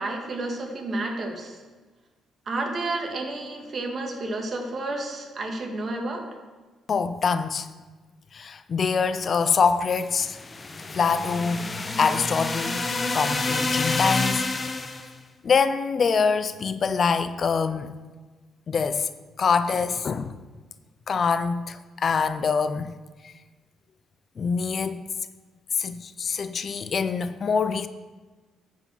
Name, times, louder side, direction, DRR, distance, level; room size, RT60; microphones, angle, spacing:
voice 1, 0.0-1.6 2.5-6.3, right 2 dB, 45° right, 1.8 m, -31 dB
voice 2, 6.9-7.7 8.3-10.4 10.9-11.7 12.0-12.8 13.1-14.4 15.4-17.9 18.7-19.1 19.4-20.4 21.1-23.0 24.4-25.1 25.8-27.9, left 5 dB, 45° left, 0.5 m, -24 dB
sound 1, 10.2-15.1, left 3 dB, 30° left, 0.8 m, -28 dB
9.5 x 4.8 x 7.2 m
cardioid pair, 90°, 0 cm